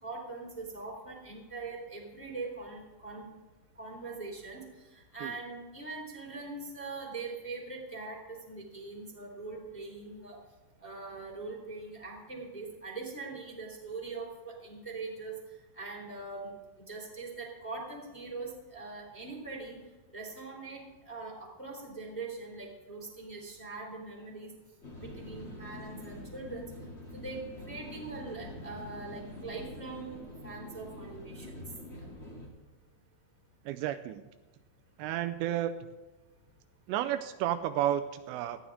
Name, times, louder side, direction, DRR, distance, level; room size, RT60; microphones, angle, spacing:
voice 1, 0.0-3.3 3.8-4.6 4.9-10.4 10.8-15.3 15.7-16.5 16.9-19.8 20.1-24.5 25.0-26.7 27.1-27.4 27.7-31.6, right 3 dB, 5° left, -2 dB, 2.6 m, -42 dB
sound 1, 24.8-32.5, left 2 dB, 20° left, 2.2 m, -45 dB
voice 2, 33.7-34.2 35.0-35.8 36.9-38.6, right 12 dB, 85° right, 10 dB, 2.7 m, -31 dB
18.5 x 14.0 x 3.7 m, 1.2 s
omnidirectional pair, 5.2 m